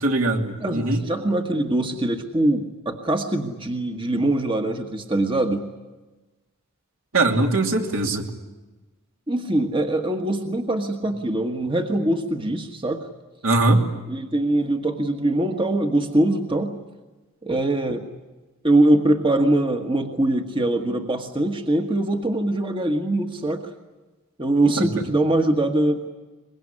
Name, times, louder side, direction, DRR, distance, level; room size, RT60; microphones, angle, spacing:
voice 1, 0.0-1.0 7.1-8.2 13.4-13.8 24.8-24.9, right 2 dB, 65° right, 2 dB, 2.9 m, -21 dB
voice 2, 0.6-5.7 9.3-13.1 14.1-16.7 17.4-18.0 18.6-23.7 24.4-26.0, right 1 dB, 25° right, 4 dB, 1.5 m, -22 dB
24.0 x 21.5 x 9.9 m, 1.2 s
head